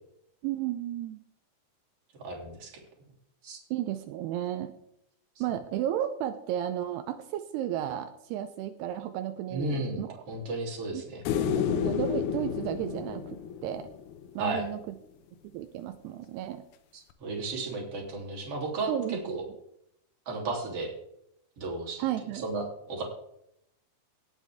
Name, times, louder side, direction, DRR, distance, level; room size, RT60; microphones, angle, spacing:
voice 1, 0.4-1.2 3.7-4.7 5.4-10.2 10.9-11.0 11.3-13.4 13.6-13.9 14.4-14.8 15.5-16.6 18.9-19.4 22.0-22.4, right 11 dB, 85° right, 9 dB, 2.4 m, -33 dB
voice 2, 2.2-2.7 3.4-3.6 9.5-11.2 14.4-14.6 16.9-19.4 20.3-20.9 21.6-22.0 22.3-23.0, right 2 dB, 35° right, -1 dB, 3.3 m, -34 dB
sound 1, 11.3-14.5 17.1-17.2, left 9 dB, 75° left, 2.4 m, -31 dB
18.0 x 7.4 x 3.5 m, 0.76 s
omnidirectional pair, 5.3 m